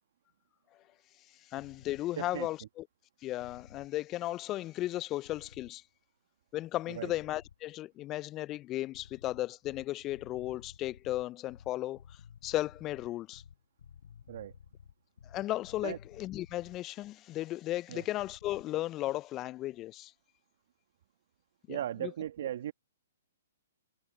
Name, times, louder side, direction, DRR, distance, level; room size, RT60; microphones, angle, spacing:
voice 1, 1.5-2.8 3.2-5.8 6.5-12.2 12.4-13.4 15.2-20.1 21.7-22.1, left 15 dB, 25° left, 0.4 m, -35 dB
sound 1, 1.6-2.0 3.4-3.9 5.2-5.8 7.1-7.6 8.9-16.8 18.2-18.6, left 7 dB, 70° left, 3.4 m, -54 dB
voice 2, 2.2-2.5 6.9-7.1 14.3-14.5 15.8-16.0 17.9-18.0 21.7-22.7, right 11 dB, 55° right, 1.4 m, -37 dB
hypercardioid pair, 125°, 0 cm